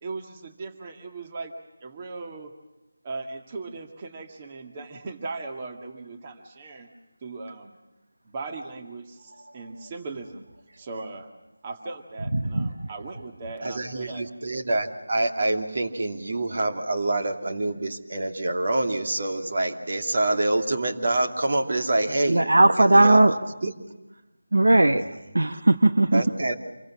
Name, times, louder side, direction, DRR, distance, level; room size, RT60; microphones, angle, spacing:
voice 1, 0.0-2.5 3.0-6.9 7.2-7.8 8.2-10.5 10.8-11.3 11.6-14.3, right 3 dB, 20° right, 2.0 m, -38 dB
voice 2, 12.4-12.9 22.3-23.3 24.5-25.0 25.3-26.2, right 2 dB, 70° right, 1.3 m, -18 dB
voice 3, 13.6-22.4 22.8-23.2 23.6-23.7 25.0-25.1 26.1-26.5, right 2 dB, 50° right, 2.7 m, -26 dB
27.5 x 23.0 x 7.3 m
figure-of-eight pair, 165°, 0 cm